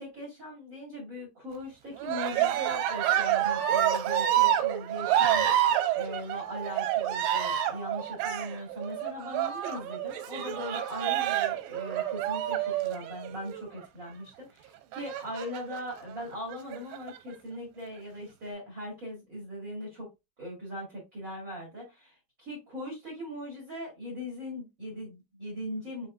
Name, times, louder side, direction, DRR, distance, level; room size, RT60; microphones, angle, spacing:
voice 1, 0.0-20.1 20.4-26.1, equal, 35° right, -5 dB, 1.5 m, -40 dB
Cheering, 2.0-13.7 14.9-15.8 16.5-17.2, right 11 dB, 80° right, 2.2 m, -28 dB
5.4 x 4.1 x 2.4 m, 0.23 s
omnidirectional pair, 4.3 m